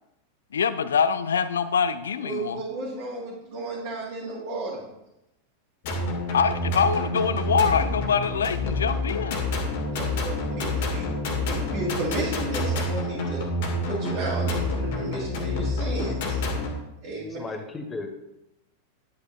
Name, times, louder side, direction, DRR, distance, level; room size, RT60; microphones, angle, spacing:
voice 1, 0.5-2.6 6.3-9.4, left 6 dB, 65° left, 14 dB, 0.4 m, -24 dB
voice 2, 2.2-4.9 9.9-11.1 11.4-13.5 13.9-16.4 17.0-17.4, right 2 dB, 45° right, -7 dB, 2.2 m, -33 dB
sound 1, 5.8-16.7, left 1 dB, 50° left, 1.6 m, -28 dB
voice 3, 17.2-18.2, left 3 dB, 15° left, 5 dB, 1.1 m, -35 dB
9.7 x 8.4 x 2.2 m, 0.90 s
figure-of-eight pair, 90°, 0 cm